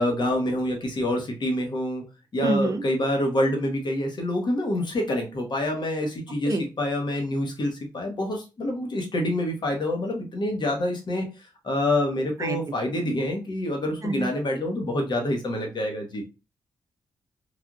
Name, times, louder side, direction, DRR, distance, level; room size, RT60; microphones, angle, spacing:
voice 1, 0.0-2.0 2.3-11.3 11.6-16.2, left 1 dB, 55° left, 2 dB, 1.1 m, -27 dB
voice 2, 2.4-2.8 6.5-6.6 12.4-12.6 14.0-14.3, right 2 dB, 40° right, 7 dB, 0.6 m, -26 dB
3.4 x 2.4 x 2.4 m, 0.29 s
supercardioid pair, 45°, 9 cm